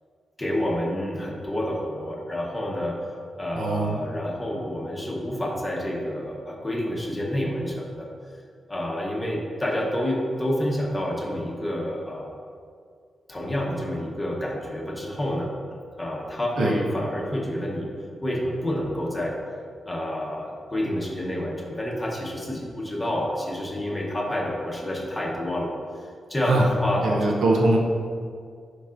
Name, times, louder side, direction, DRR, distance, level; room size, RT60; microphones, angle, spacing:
voice 1, 0.4-3.0 3.4-8.1 8.7-12.3 13.3-15.5 16.0-17.9 18.2-19.4 19.9-25.7 26.3-27.3, left 1 dB, 15° left, -2 dB, 1.0 m, -28 dB
voice 2, 3.5-4.0 16.6-16.7 26.4-26.7 27.0-27.8, right 2 dB, 80° right, 0 dB, 0.7 m, -22 dB
10.0 x 4.7 x 2.5 m, 2.1 s
wide cardioid pair, 145°, 0 cm